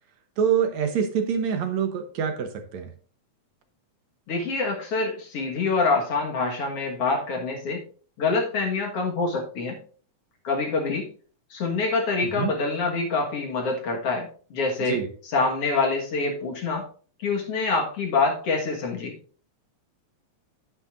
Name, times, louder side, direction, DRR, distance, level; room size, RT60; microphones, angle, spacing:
voice 1, 0.4-2.9 12.3-12.5 14.8-15.1, right 7 dB, 70° right, 6 dB, 2.2 m, -25 dB
voice 2, 4.3-7.8 8.2-9.8 10.4-11.1 11.5-15.0 15.3-16.8 17.2-19.1, left 3 dB, 55° left, 1 dB, 2.4 m, -26 dB
10.5 x 9.8 x 2.6 m, 0.42 s
omnidirectional pair, 3.5 m